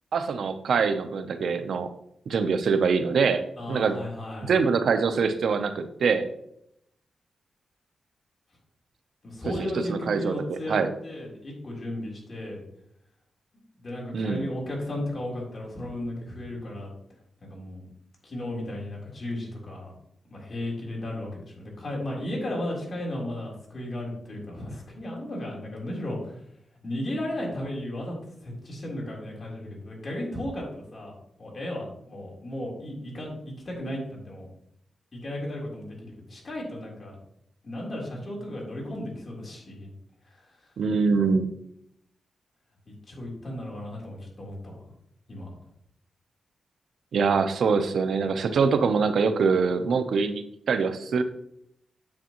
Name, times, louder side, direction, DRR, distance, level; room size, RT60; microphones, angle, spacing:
voice 1, 0.1-1.9 2.3-4.0 4.4-6.3 9.9-10.9 14.1-14.5 40.8-41.5 47.1-51.2, right 5 dB, 75° right, 9 dB, 0.7 m, -24 dB
voice 2, 3.6-4.5 9.2-10.8 11.0-12.6 13.8-16.9 17.4-17.8 18.2-19.9 20.3-26.4 26.8-28.2 28.4-31.1 31.4-34.5 35.1-37.2 37.6-39.9 40.3-40.6 43.1-44.8 45.3-45.5, left 1 dB, 40° left, -3 dB, 3.5 m, -35 dB
9.7 x 7.2 x 3.0 m, 0.75 s
wide cardioid pair, 110°, 0 cm